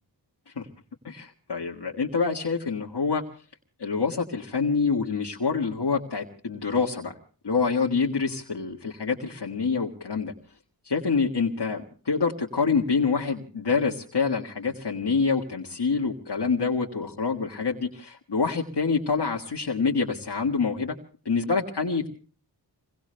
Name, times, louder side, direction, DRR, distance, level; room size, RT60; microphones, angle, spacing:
voice 1, 1.0-3.2 3.8-7.2 7.4-10.3 10.8-21.0 21.3-22.1, left 5 dB, 70° left, -1 dB, 1.8 m, -26 dB
28.5 x 22.5 x 2.2 m, 0.41 s
wide cardioid pair, 65°, 41 cm